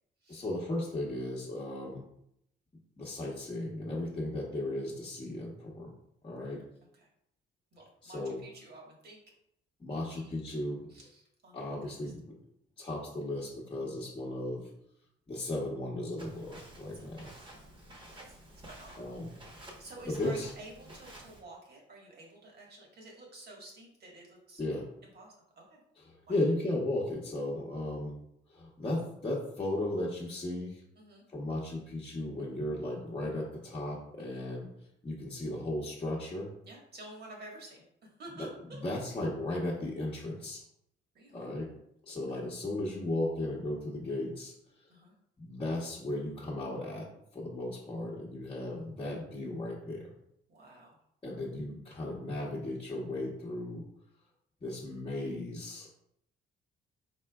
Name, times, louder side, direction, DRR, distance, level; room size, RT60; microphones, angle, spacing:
voice 1, 0.3-2.0 3.0-5.9 6.2-6.6 8.0-8.4 9.8-10.9 11.5-12.3 12.8-14.7 15.3-17.3 19.0-19.3 20.1-20.5 24.6-24.9 26.0-28.2 28.5-30.8 31.3-34.7 35.0-36.5 38.4-40.6 41.3-41.7 42.0-44.5 45.4-47.1 47.3-50.1 51.2-53.8 54.6-55.9, left 1 dB, 25° left, -6 dB, 1.0 m, -35 dB
voice 2, 7.7-9.2 9.9-10.4 10.9-11.6 12.0-12.1 16.9-19.4 19.8-24.6 25.0-25.8 26.3-26.4 31.0-31.2 32.4-32.6 34.2-34.4 36.6-38.8 41.1-41.5 42.1-42.5 44.9-45.1 50.5-51.0, right 2 dB, 55° right, -1 dB, 1.5 m, -51 dB
Walk footsteps, 16.2-21.4, right 1 dB, 25° right, 1.0 m, -51 dB
4.4 x 4.1 x 2.3 m, 0.74 s
cardioid pair, 90°, 20 cm